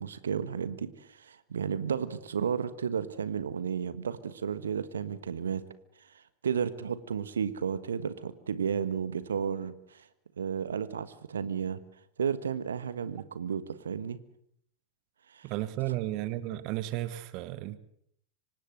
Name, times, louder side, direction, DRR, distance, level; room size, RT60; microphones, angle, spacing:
voice 1, 0.0-5.6 6.0-10.1 10.4-11.8 12.2-14.2 15.3-15.5, right 7 dB, 70° right, 1.4 m, -33 dB
voice 2, 15.4-17.8, right 15 dB, 40° right, 1.3 m, -33 dB
25.5 x 19.0 x 8.0 m
figure-of-eight pair, 90°, 0 cm